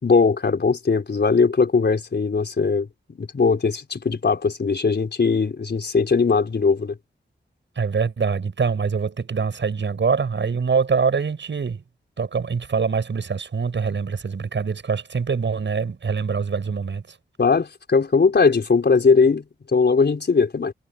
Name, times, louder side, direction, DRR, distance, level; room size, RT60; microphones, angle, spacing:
voice 1, 0.0-2.9 3.2-6.9 17.4-20.7, left 4 dB, 65° left, 4.3 m, -19 dB
voice 2, 7.8-11.8 12.2-17.0, right 5 dB, 80° right, 7.1 m, -24 dB
wide cardioid pair, 70°, 19 cm